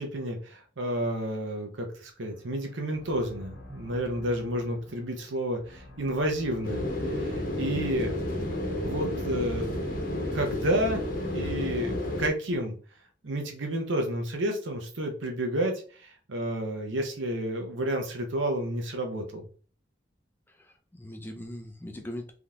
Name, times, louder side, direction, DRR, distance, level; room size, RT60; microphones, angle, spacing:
voice 1, 0.0-8.2 8.8-9.7 10.3-11.0 11.3-12.7 13.2-19.4, right 1 dB, 80° right, 4 dB, 0.7 m, -31 dB
sound 1, 2.2-12.2, left 1 dB, 70° left, 1.1 m, -49 dB
sound 2, 6.6-12.3, left 1 dB, 50° left, 0.9 m, -31 dB
voice 2, 20.5-22.3, left 1 dB, 10° left, 3 dB, 0.4 m, -40 dB
3.6 x 2.8 x 2.4 m, 0.41 s
head